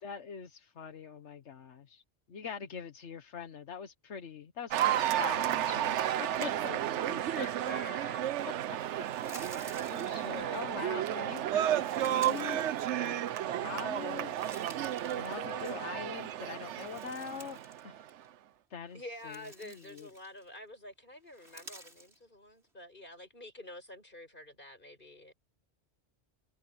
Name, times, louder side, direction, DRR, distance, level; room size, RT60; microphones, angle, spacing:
voice 1, 0.0-2.0 2.3-7.5 8.4-8.5 9.0-14.4 15.1-17.6 17.8-18.1 18.7-20.1, left 6 dB, 85° left, 1.5 m, -44 dB
Cheering / Applause, 4.7-18.1, right 11 dB, 90° right, 1.0 m, -32 dB
voice 2, 7.2-8.3 10.0-11.3 15.3-16.3 18.9-25.3, left 1 dB, 50° left, 7.6 m, -48 dB
sound 1, 8.7-10.7 11.5-13.5 13.9-16.0 16.4-17.8 18.1-18.3 18.9-20.6 21.3-22.2, right 1 dB, 70° right, 6.3 m, -53 dB
omnidirectional pair, 1.2 m